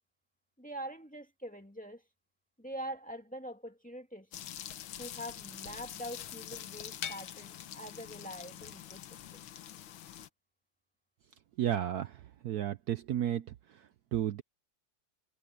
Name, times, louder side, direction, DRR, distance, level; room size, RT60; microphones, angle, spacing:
voice 1, 0.6-2.0 2.6-4.3 5.0-9.4, equal, 5° left, 1.9 m, -44 dB
sound 1, 4.3-10.3, left 10 dB, 85° left, 1.8 m, -44 dB
voice 2, 11.6-13.5 14.1-14.4, right 11 dB, 70° right, 0.9 m, -32 dB
omnidirectional pair, 2.2 m